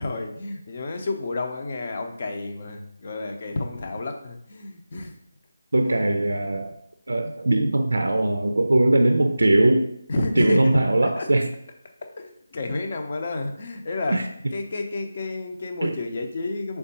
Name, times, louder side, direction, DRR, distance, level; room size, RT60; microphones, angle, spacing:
voice 1, 0.0-5.1 7.2-7.3 10.1-10.7 11.2-11.3 12.2-14.2 14.5-16.8, left 2 dB, 45° left, 4 dB, 0.7 m, -30 dB
voice 2, 5.7-6.7 7.1-11.5 14.1-14.5 15.8-16.0, right 1 dB, 80° right, 6 dB, 0.4 m, -21 dB
3.6 x 3.5 x 4.2 m, 0.72 s
figure-of-eight pair, 160°, 0 cm